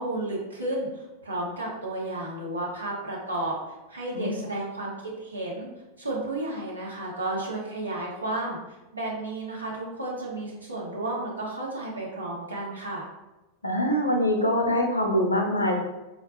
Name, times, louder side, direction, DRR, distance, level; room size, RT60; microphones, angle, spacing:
voice 1, 0.0-5.7 6.0-8.6 8.9-13.0, right 2 dB, 80° right, -4 dB, 0.8 m, -32 dB
voice 2, 13.6-15.7, equal, 80° left, 2 dB, 0.4 m, -24 dB
3.8 x 2.2 x 2.3 m, 1.0 s
figure-of-eight pair, 90°, 0 cm